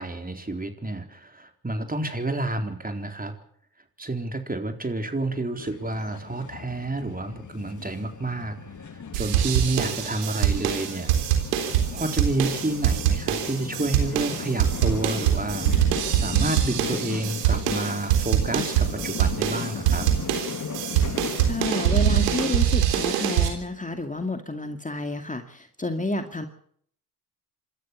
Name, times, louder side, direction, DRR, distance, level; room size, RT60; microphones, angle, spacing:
voice 1, 0.0-3.4 4.0-11.1 11.6-15.7 16.1-20.1, right 2 dB, 20° right, 5 dB, 4.1 m, -30 dB
sound 1, 5.6-22.5, left 6 dB, 40° left, 2.6 m, -37 dB
sound 2, 9.1-23.5, right 10 dB, 90° right, 3.6 m, -24 dB
voice 2, 21.5-26.5, left 2 dB, 15° left, 6 dB, 2.3 m, -30 dB
27.0 x 13.5 x 7.3 m, 0.64 s
hypercardioid pair, 50°, 46 cm